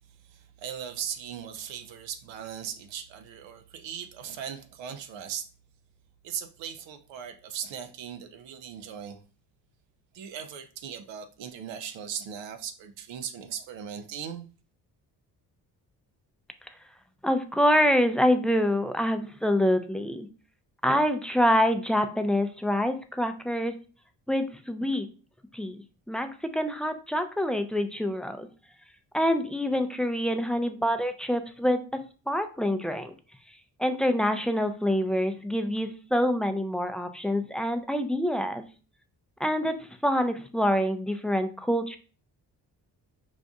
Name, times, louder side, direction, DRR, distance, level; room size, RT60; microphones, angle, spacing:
voice 1, 0.2-5.5 6.2-9.2 10.1-14.5, right 8 dB, 80° right, 0.6 m, -38 dB
voice 2, 17.2-20.3 20.8-23.7 24.3-25.1 25.5-25.8 26.1-28.5 29.1-32.0 32.3-33.1 33.8-38.6 39.4-42.0, equal, ahead, 0.4 m, -26 dB
5.2 x 2.5 x 2.3 m
supercardioid pair, 55°, 45 cm